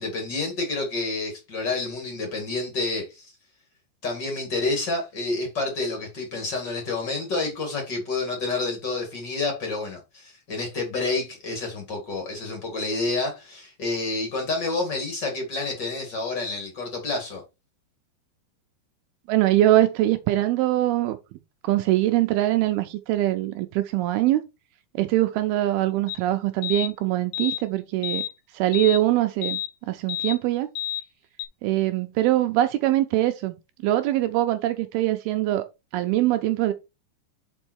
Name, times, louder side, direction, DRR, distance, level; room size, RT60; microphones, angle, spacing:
voice 1, 0.0-3.3 4.0-17.4, left 3 dB, 40° left, 1.6 m, -29 dB
voice 2, 19.3-21.2 21.6-24.4 24.9-28.2 28.5-29.6 29.9-30.7 31.6-33.6 33.8-35.7 35.9-36.7, right 14 dB, 85° right, 2.2 m, -22 dB
sound 1, 26.1-26.2 26.6-26.9 27.3-27.6 28.0-28.3 28.7-29.0 29.4-29.7 30.1-30.4 30.8-31.0 31.4-31.5, left 12 dB, 75° left, 2.4 m, -30 dB
5.4 x 5.2 x 4.5 m
omnidirectional pair, 4.9 m